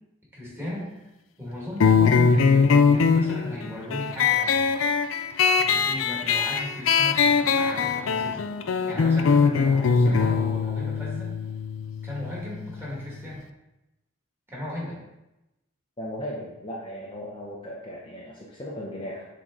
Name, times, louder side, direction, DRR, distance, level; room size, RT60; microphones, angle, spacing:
voice 1, 0.3-1.0 1.4-4.6 5.6-8.4 8.9-11.3 12.0-13.4 14.5-15.0, left 1 dB, 10° right, -6 dB, 1.9 m, -35 dB
sound 1, 1.8-12.9, left 5 dB, 70° left, 0.4 m, -22 dB
voice 2, 16.0-19.3, equal, 25° left, -5 dB, 0.8 m, -36 dB
7.3 x 3.9 x 3.7 m, 0.97 s
head